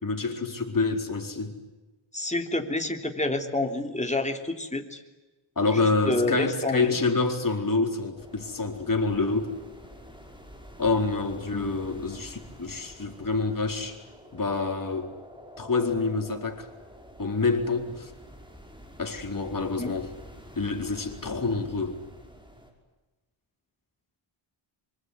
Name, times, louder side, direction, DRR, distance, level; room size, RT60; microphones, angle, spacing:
voice 1, 0.0-1.5 5.6-9.5 10.8-14.0 14.3-15.1 15.6-16.7 17.2-18.1 19.0-20.1 20.6-22.0, left 3 dB, 40° left, 4.4 m, -27 dB
voice 2, 2.1-5.0 6.1-6.9 19.8-19.9, left 2 dB, 15° left, 3.4 m, -28 dB
sound 1, 8.1-22.7, equal, 10° right, 5.9 m, -48 dB
25.5 x 24.5 x 9.6 m
wide cardioid pair, 90°, 49 cm